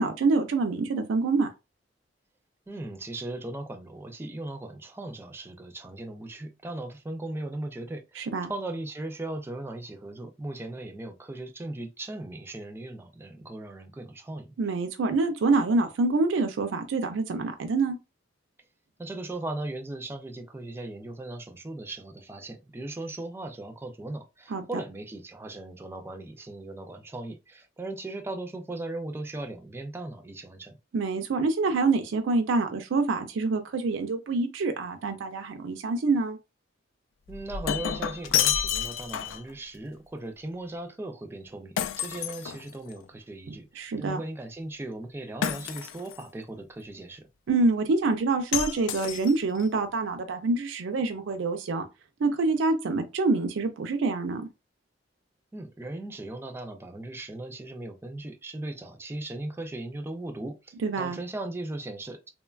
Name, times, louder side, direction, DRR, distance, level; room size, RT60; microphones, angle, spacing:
voice 1, 0.0-1.5 8.2-8.5 14.6-18.0 24.5-24.7 30.9-36.4 43.7-44.2 47.5-51.9 52.2-54.4 60.8-61.2, right 3 dB, 90° right, 0.4 m, -26 dB
voice 2, 2.7-14.5 19.0-30.7 37.3-47.3 55.5-62.3, right 2 dB, 15° right, 0.3 m, -38 dB
Shatter, 37.3-39.5 41.8-43.0 45.4-46.2 48.5-49.6, left 9 dB, 85° left, 0.3 m, -29 dB
3.1 x 2.2 x 2.3 m
head